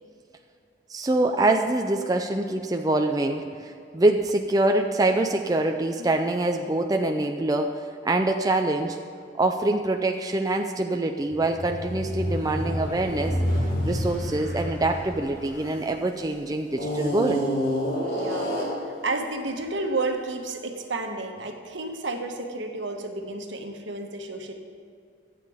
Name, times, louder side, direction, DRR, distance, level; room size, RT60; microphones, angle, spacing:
voice 1, 0.9-9.0 9.4-13.3 13.8-17.4, right 2 dB, 20° right, 4 dB, 0.4 m, -25 dB
sound 1, 11.3-16.1 16.7-18.9, equal, 50° left, 3.9 m, -28 dB
voice 2, 18.1-18.6 18.8-24.5, right 2 dB, 65° right, 3 dB, 1.3 m, -31 dB
24.0 x 8.6 x 3.6 m, 2.4 s
head